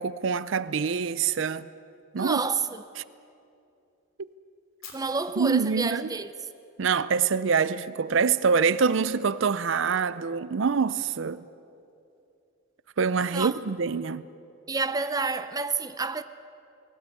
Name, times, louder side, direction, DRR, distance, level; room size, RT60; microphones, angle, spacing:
voice 1, 0.0-1.7 2.1-2.4 5.4-6.1 6.8-11.4 13.0-14.3, right 5 dB, 65° right, 0.5 m, -25 dB
voice 2, 2.2-2.8 4.9-6.3 13.3-13.5 14.7-16.2, right 4 dB, 20° right, 0.6 m, -29 dB
Fire, 4.8-6.9, left 6 dB, 80° left, 3.6 m, -50 dB
20.5 x 17.5 x 8.5 m
head